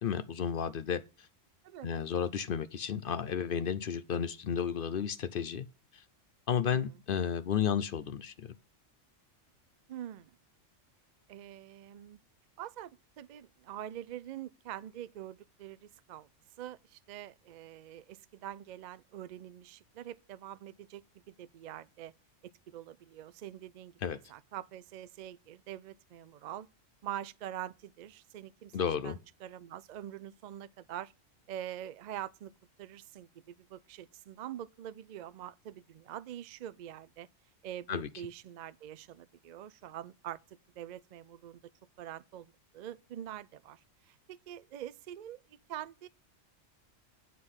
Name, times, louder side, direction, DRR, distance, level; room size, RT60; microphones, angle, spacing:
voice 1, 0.0-1.3 1.8-5.7 5.9-6.0 6.5-8.5 24.0-24.2 28.7-29.2 37.9-38.1, left 7 dB, 55° left, 0.7 m, -32 dB
voice 2, 9.9-10.3 11.3-12.2 12.6-16.3 16.6-22.1 22.7-24.0 24.3-26.7 27.0-31.1 31.5-32.5 32.8-37.3 37.6-40.4 40.8-41.6 42.0-46.1, right 11 dB, 90° right, 0.3 m, -45 dB
8.4 x 4.9 x 5.5 m
omnidirectional pair, 1.3 m